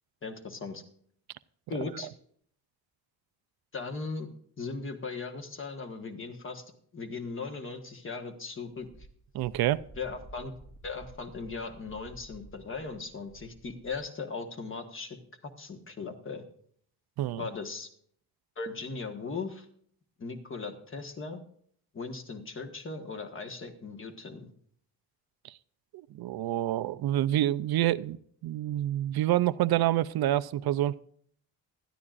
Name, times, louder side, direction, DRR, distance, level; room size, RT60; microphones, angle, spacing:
voice 1, 0.2-0.8 1.7-2.1 3.7-4.3 4.6-6.6 6.9-8.9 9.9-10.5 10.8-15.2 15.4-16.4 17.4-17.9 18.6-19.7 20.2-21.4 21.9-24.5, left 4 dB, 30° left, 6 dB, 1.4 m, -38 dB
Wind, 8.8-14.1, right 2 dB, ahead, 0.8 m, -52 dB
voice 2, 9.3-9.8 17.2-17.4 26.1-30.9, right 13 dB, 70° right, 14 dB, 0.5 m, -27 dB
19.5 x 13.0 x 2.5 m, 0.62 s
cardioid pair, 170°, 39 cm